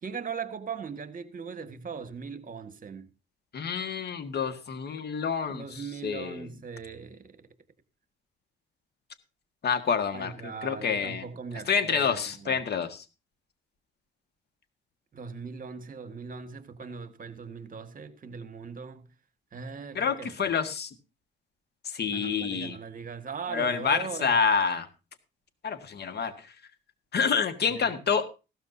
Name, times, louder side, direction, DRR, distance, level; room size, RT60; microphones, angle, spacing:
voice 1, 0.0-3.1 5.5-7.3 10.1-12.6 15.1-19.0 19.5-20.3 22.1-24.4 27.7-28.0, right 5 dB, 45° right, 1.7 m, -39 dB
voice 2, 3.5-6.4 9.6-11.3 11.7-13.0 20.0-20.9 21.9-22.8 23.5-24.9 25.6-26.5 27.1-28.3, left 6 dB, 55° left, 1.8 m, -28 dB
16.0 x 13.0 x 2.7 m
cardioid pair, 90°, 20 cm